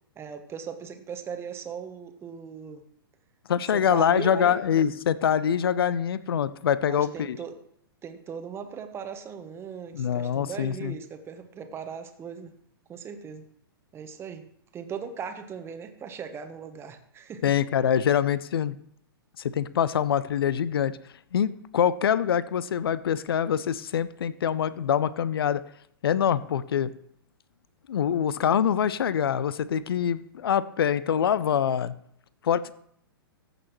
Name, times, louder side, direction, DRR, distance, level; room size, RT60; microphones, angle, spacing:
voice 1, 0.2-2.8 3.7-4.6 6.8-7.6 8.0-12.5 12.9-13.5 13.9-14.5 14.7-17.5, right 7 dB, 20° right, 8 dB, 1.0 m, -38 dB
voice 2, 3.5-7.4 9.9-10.9 17.4-18.8 19.4-21.0 21.3-25.6 26.0-26.9 27.9-31.9 32.4-32.7, left 8 dB, 70° left, 17 dB, 0.5 m, -25 dB
14.5 x 6.5 x 3.1 m, 0.68 s
hypercardioid pair, 115°, 13 cm